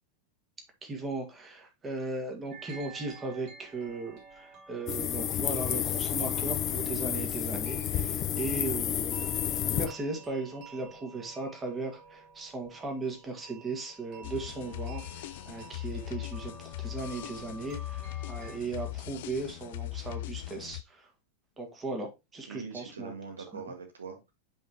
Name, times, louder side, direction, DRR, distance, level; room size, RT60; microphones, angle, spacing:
voice 1, 0.8-9.4 9.7-21.1 21.6-23.1 23.5-23.6, right 3 dB, 15° right, 2.0 m, -37 dB
sound 1, 2.5-18.6, right 3 dB, 45° right, 3.4 m, -51 dB
sound 2, 4.9-9.9, left 10 dB, 35° left, 0.7 m, -30 dB
sound 3, 14.2-20.8, left 17 dB, 55° left, 0.3 m, -39 dB
voice 2, 22.5-24.3, right 5 dB, 70° right, 1.8 m, -42 dB
9.1 x 5.2 x 2.9 m
figure-of-eight pair, 90°, 0 cm